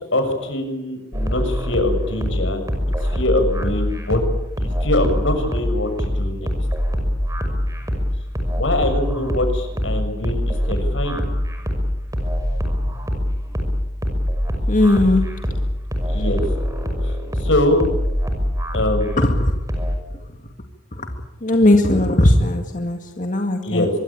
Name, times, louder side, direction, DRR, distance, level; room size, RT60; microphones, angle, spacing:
voice 1, 0.1-2.6 3.0-4.2 4.6-6.5 8.6-11.2 16.1-16.4 17.0-17.8 18.7-19.3 23.6-23.9, left 1 dB, 85° left, 7 dB, 6.6 m, -23 dB
sound 1, 1.1-19.9, equal, 15° right, 5.9 m, -23 dB
voice 2, 14.7-15.3 19.2-19.5 20.9-21.1 21.4-23.9, left 1 dB, 45° left, 5 dB, 2.1 m, -18 dB
25.5 x 22.5 x 8.8 m, 0.92 s
head